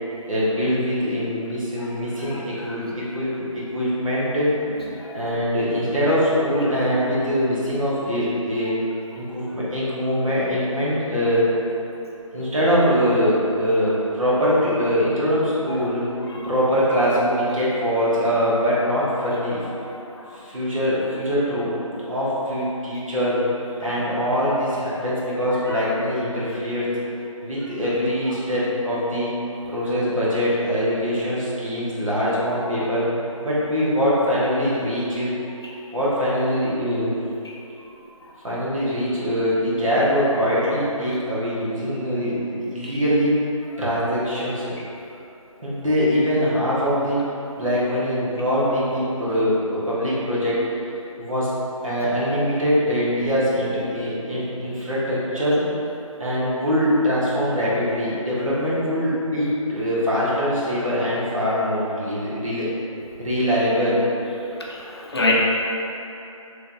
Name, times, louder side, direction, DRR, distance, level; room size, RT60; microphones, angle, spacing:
voice 1, 0.3-3.4 3.7-4.5 5.1-8.8 9.2-11.5 12.3-16.1 16.4-19.6 20.3-23.4 23.8-26.9 27.4-29.3 29.7-33.1 33.4-35.3 35.9-37.1 38.4-43.3 43.8-44.7 45.6-47.2 47.6-50.6 51.2-51.5 51.8-55.6 56.2-62.7 63.2-64.0, equal, 70° right, -9 dB, 1.3 m, -23 dB
voice 2, 5.0-5.2 16.3-16.4 25.7-25.8 65.1-65.3, left 3 dB, 45° left, -4 dB, 0.5 m, -23 dB
3.6 x 3.2 x 2.6 m, 2.9 s
figure-of-eight pair, 165°, 18 cm